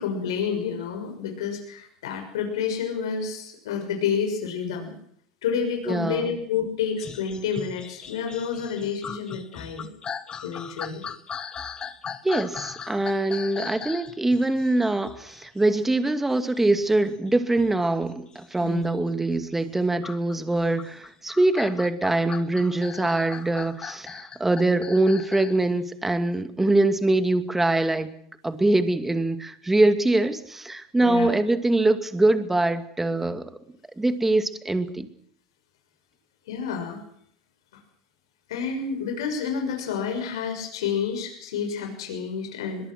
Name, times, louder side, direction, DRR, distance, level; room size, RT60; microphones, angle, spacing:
voice 1, 0.0-4.9 5.4-9.9 10.4-11.0 18.6-18.9 23.0-23.1 31.0-31.4 36.5-37.0 38.5-42.9, left 6 dB, 85° left, 4 dB, 6.1 m, -29 dB
voice 2, 5.9-6.3 12.2-28.1 28.4-33.5 34.0-35.1, right 2 dB, 10° right, 9 dB, 2.4 m, -23 dB
sound 1, 7.0-19.4 20.0-25.6 26.1-26.2, left 7 dB, 30° left, 1.9 m, -39 dB
22.5 x 22.5 x 6.3 m, 0.65 s
hypercardioid pair, 95°, 3 cm